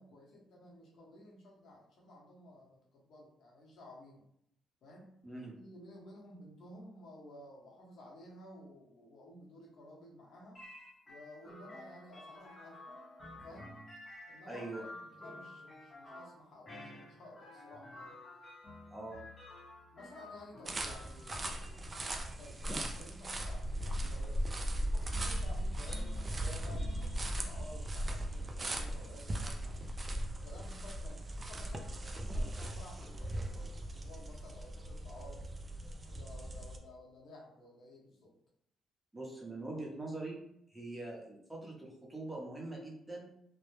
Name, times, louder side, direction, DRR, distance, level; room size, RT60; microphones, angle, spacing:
voice 1, 0.0-4.2 4.8-5.2 5.5-10.6 11.0-12.9 13.3-13.7 14.3-18.1 19.9-29.8 30.4-35.5 36.1-38.4, left 1 dB, 70° left, -3 dB, 0.8 m, -54 dB
voice 2, 5.2-5.6 14.5-14.8 18.9-19.2 39.1-40.4 40.7-43.2, right 2 dB, 10° right, -3 dB, 0.7 m, -43 dB
sound 1, 10.5-29.2, left 1 dB, 30° left, 0.8 m, -53 dB
sound 2, 20.6-36.8, right 1 dB, 30° right, 0.3 m, -38 dB
2.2 x 2.0 x 3.0 m, 0.74 s
cardioid pair, 90°, 0 cm